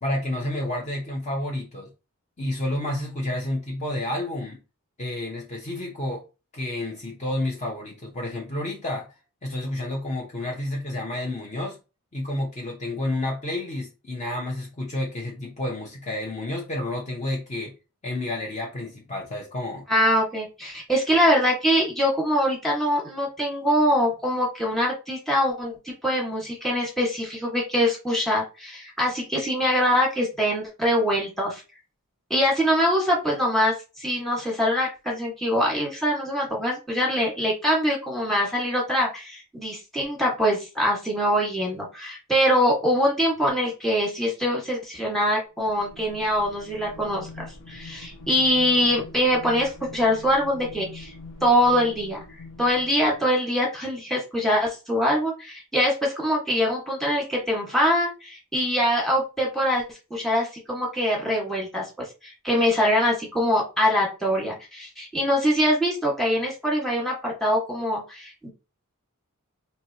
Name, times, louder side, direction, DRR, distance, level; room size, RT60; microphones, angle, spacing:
voice 1, 0.0-1.9 2.4-4.6 5.0-6.2 6.5-9.1 9.4-11.8 12.1-17.7 18.0-19.9, left 1 dB, 30° left, 0.8 m, -30 dB
voice 2, 19.9-31.6 32.3-51.1 51.4-52.2 52.6-59.8 60.1-61.8 62.2-68.5, equal, ahead, 1.4 m, -23 dB
sound 1, 45.6-53.3, left 3 dB, 60° left, 1.0 m, -43 dB
4.6 x 2.7 x 2.8 m
head